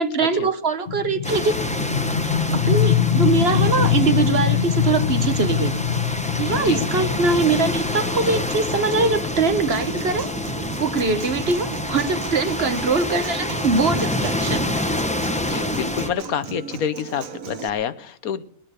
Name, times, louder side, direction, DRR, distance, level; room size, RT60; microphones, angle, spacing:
voice 1, 0.0-1.6 2.5-5.7 6.1-10.3 10.8-14.8, right 4 dB, 50° right, 10 dB, 1.2 m, -22 dB
sound 1, 0.9-12.3, left 8 dB, 45° left, 1.1 m, -24 dB
sound 2, 1.2-16.1, left 1 dB, 5° left, 0.8 m, -27 dB
Human voice / Acoustic guitar, 9.7-17.7, right 5 dB, 75° right, 1.4 m, -36 dB
voice 2, 15.4-18.4, left 8 dB, 85° left, 13 dB, 1.4 m, -28 dB
19.5 x 9.2 x 6.7 m, 0.62 s
omnidirectional pair, 1.5 m